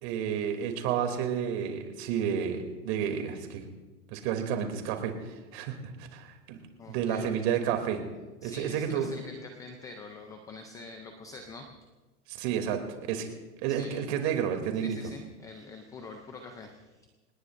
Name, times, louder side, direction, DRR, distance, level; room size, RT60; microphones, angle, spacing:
voice 1, 0.0-3.7 4.1-6.6 6.9-8.0 8.4-9.1 12.3-12.8 13.1-13.3 13.6-15.0, right 8 dB, 40° right, 5 dB, 2.9 m, -31 dB
voice 2, 6.8-7.3 8.4-11.7 13.7-14.0 14.7-17.1, left 3 dB, 10° left, 4 dB, 0.4 m, -45 dB
26.5 x 19.5 x 2.6 m, 1.2 s
hypercardioid pair, 130°, 48 cm